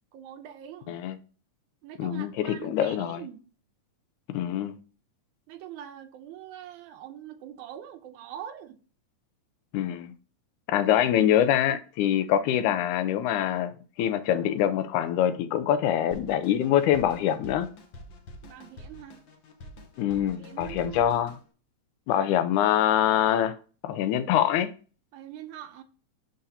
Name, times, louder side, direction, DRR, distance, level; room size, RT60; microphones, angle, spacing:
voice 1, 0.1-1.0 1.8-3.4 5.5-8.8 18.4-19.2 20.4-21.0 25.1-25.8, right 10 dB, 90° right, 2.1 m, -43 dB
voice 2, 2.0-3.2 4.3-4.7 9.7-10.1 10.7-13.7 14.0-17.7 20.0-21.3 22.1-23.5 23.8-24.7, left 10 dB, 90° left, 2.1 m, -24 dB
Drum kit, 16.1-21.4, left 1 dB, 70° left, 1.1 m, -46 dB
11.5 x 3.9 x 2.7 m
omnidirectional pair, 3.4 m